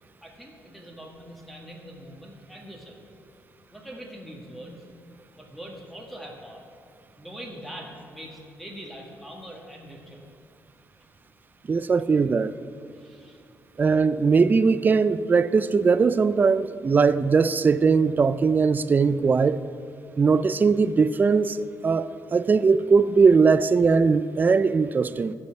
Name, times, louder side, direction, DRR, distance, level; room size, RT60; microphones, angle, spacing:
voice 1, 0.2-3.0 3.7-4.8 5.3-6.6 7.2-10.2 12.9-13.4, equal, ahead, -2 dB, 1.6 m, -42 dB
voice 2, 11.7-12.5 13.8-19.6 20.2-25.3, right 5 dB, 30° right, 15 dB, 0.3 m, -20 dB
15.0 x 5.4 x 5.8 m, 2.5 s
cardioid pair, 105°, 6 cm